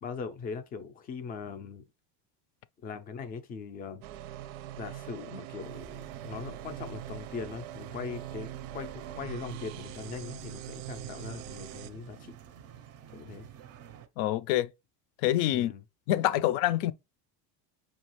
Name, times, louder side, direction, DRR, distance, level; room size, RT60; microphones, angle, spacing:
voice 1, 0.0-1.8 2.8-4.0 4.8-12.3 13.1-13.5 15.5-15.8, left 5 dB, 25° left, 0.3 m, -40 dB
sound 1, 4.0-11.9, right 12 dB, 90° right, 0.6 m, -43 dB
sound 2, 5.6-14.1, right 9 dB, 35° right, 0.4 m, -49 dB
voice 2, 14.2-14.7 15.2-15.7 16.1-16.9, left 14 dB, 85° left, 0.6 m, -26 dB
5.4 x 2.4 x 2.9 m
cardioid pair, 155°, 43 cm